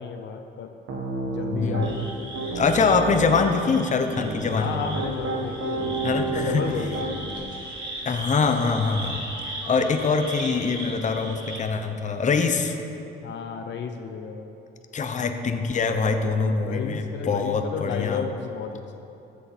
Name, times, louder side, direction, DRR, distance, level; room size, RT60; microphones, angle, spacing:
voice 1, 0.0-2.1 4.5-7.0 13.2-14.5 16.6-18.9, left 6 dB, 65° left, 5 dB, 0.8 m, -33 dB
Piano, 0.9-1.9 2.3-3.5 4.1-7.3, right 2 dB, 80° right, 1.6 m, -30 dB
voice 2, 1.5-1.9 2.5-4.7 6.0-6.7 8.0-12.8 14.9-18.2, left 4 dB, 40° left, 6 dB, 0.8 m, -24 dB
sound 1, 1.8-11.6, right 1 dB, 25° right, 2.5 m, -38 dB
14.5 x 6.7 x 4.4 m, 2.8 s
cardioid pair, 90°, 20 cm